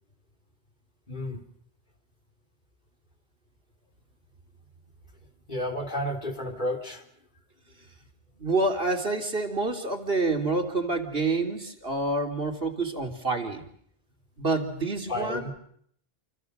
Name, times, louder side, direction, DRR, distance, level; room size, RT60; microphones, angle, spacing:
voice 1, 1.1-1.4 5.5-7.1 15.1-15.5, left 1 dB, 50° left, 5 dB, 4.1 m, -31 dB
voice 2, 8.4-13.7 14.4-15.5, right 3 dB, 65° right, 5 dB, 3.4 m, -28 dB
28.5 x 28.0 x 6.8 m, 0.66 s
omnidirectional pair, 1.0 m